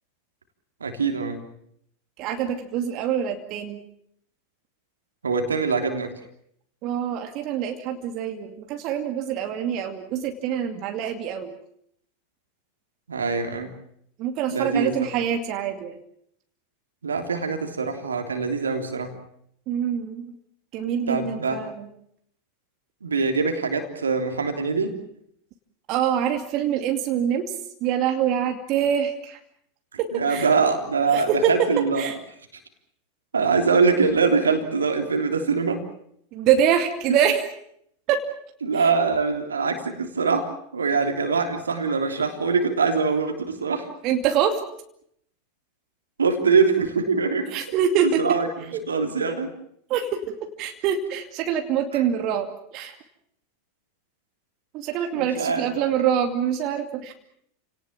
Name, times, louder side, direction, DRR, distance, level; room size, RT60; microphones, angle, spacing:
voice 1, 0.8-1.4 5.2-6.1 13.1-13.8 14.5-14.9 17.0-19.2 21.1-21.6 23.0-24.9 30.1-32.1 33.3-35.8 38.6-43.9 46.2-47.5 48.2-49.5 51.9-52.0 55.1-55.9, right 4 dB, 80° right, 5 dB, 3.3 m, -23 dB
voice 2, 2.2-3.8 6.8-11.5 14.2-16.0 19.7-20.3 20.7-21.8 25.9-27.5 27.8-29.4 30.0-30.5 31.1-31.7 32.0-32.1 36.3-37.5 38.1-38.2 38.8-38.9 44.0-44.6 47.5-48.2 48.7-48.8 49.9-50.2 50.6-53.0 54.7-57.1, right 9 dB, 45° right, 5 dB, 2.5 m, -25 dB
30.0 x 18.5 x 7.4 m, 0.70 s
figure-of-eight pair, 85°, 0 cm